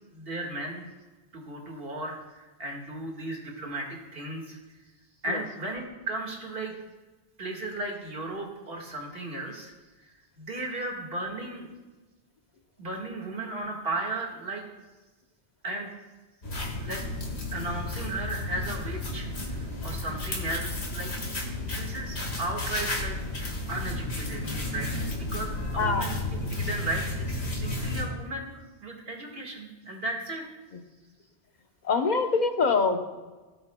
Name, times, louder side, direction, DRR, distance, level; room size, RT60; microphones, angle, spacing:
voice 1, 0.1-0.9 1.3-4.6 5.2-6.8 7.4-10.1 10.4-11.7 12.8-14.7 15.6-15.9 16.8-17.0 17.5-21.1 21.6-23.2 23.7-26.2 26.5-30.4, right 2 dB, 55° right, 0 dB, 1.9 m, -35 dB
sound 1, 16.4-28.1, left 2 dB, 65° left, 2.0 m, -32 dB
voice 2, 25.8-26.1 31.8-33.0, left 4 dB, 45° left, 6 dB, 0.9 m, -24 dB
17.5 x 7.8 x 2.2 m, 1.2 s
omnidirectional pair, 1.2 m